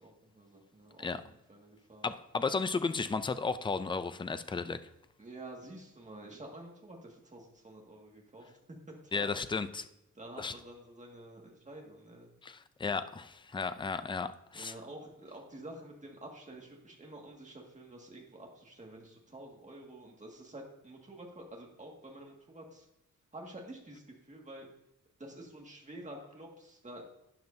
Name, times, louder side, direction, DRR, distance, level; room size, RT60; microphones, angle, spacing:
voice 1, 0.0-2.1 5.2-8.8 9.0-9.3 10.2-12.3 14.5-22.9 23.3-24.7 25.2-27.0, right 1 dB, 20° right, 0 dB, 1.8 m, -49 dB
voice 2, 2.0-4.8 9.1-9.9 10.4-10.5 12.4-14.7, left 4 dB, 15° left, 11 dB, 0.4 m, -34 dB
12.5 x 9.5 x 2.7 m, 0.87 s
wide cardioid pair, 170°, 33 cm